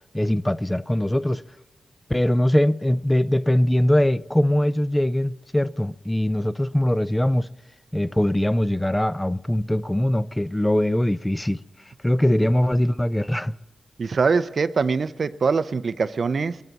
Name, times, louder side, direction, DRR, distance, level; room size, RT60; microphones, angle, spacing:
voice 1, 0.1-1.4 2.1-7.5 7.9-11.6 12.0-13.5, left 1 dB, 10° left, 0.4 m, -21 dB
voice 2, 14.0-16.6, right 5 dB, 60° right, 0.5 m, -23 dB
21.5 x 12.0 x 4.1 m
cardioid pair, 60°, 0 cm